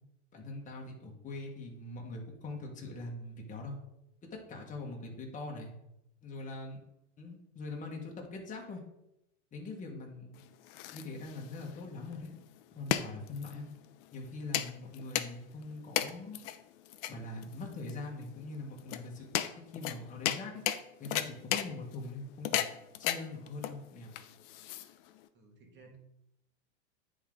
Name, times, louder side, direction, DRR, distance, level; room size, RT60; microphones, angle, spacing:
voice 1, 0.3-3.8 4.3-5.7 6.2-6.8 7.2-8.8 9.5-10.4 10.9-12.4 12.7-13.7 14.1-16.4 17.1-19.3 19.7-20.6 21.0-22.6 23.0-24.1, left 2 dB, 20° left, 0 dB, 1.5 m, -42 dB
sound 1, 10.3-25.3, left 12 dB, 50° left, 0.6 m, -36 dB
voice 2, 25.3-26.0, right 3 dB, 30° right, 1 dB, 1.8 m, -57 dB
9.7 x 3.7 x 3.7 m, 0.83 s
hypercardioid pair, 120°, 36 cm